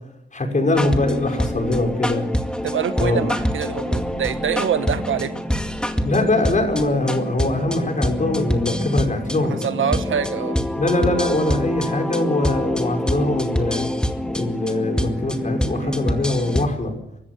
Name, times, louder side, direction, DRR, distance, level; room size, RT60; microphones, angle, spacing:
voice 1, 0.3-2.2 3.0-3.3 6.0-9.7 10.8-13.9 14.3-16.9, left 2 dB, 40° left, 4 dB, 6.0 m, -22 dB
sound 1, 0.7-16.7, left 1 dB, 5° left, 2.1 m, -25 dB
voice 2, 2.6-5.3 9.5-10.6 15.7-16.0, right 8 dB, 80° right, 11 dB, 1.5 m, -25 dB
24.0 x 13.5 x 9.9 m, 0.85 s
cardioid pair, 75°, 20 cm